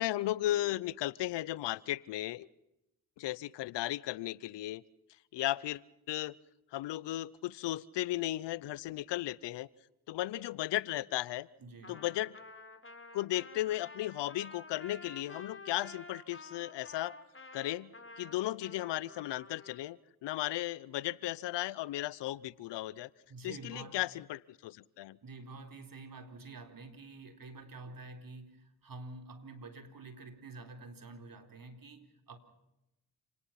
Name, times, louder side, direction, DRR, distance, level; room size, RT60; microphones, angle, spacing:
voice 1, 0.0-2.5 3.2-4.8 5.3-5.8 6.1-6.3 6.7-9.7 10.1-11.5 11.9-12.3 13.1-17.2 17.5-23.1 23.4-25.2, left 15 dB, 85° left, 22 dB, 0.7 m, -35 dB
voice 2, 11.6-12.0 23.3-24.0 25.2-32.4, right 3 dB, 55° right, 6 dB, 4.0 m, -48 dB
Trumpet, 11.8-19.8, left 2 dB, 30° left, 3.8 m, -51 dB
28.5 x 19.0 x 5.8 m, 0.88 s
supercardioid pair, 45°, 41 cm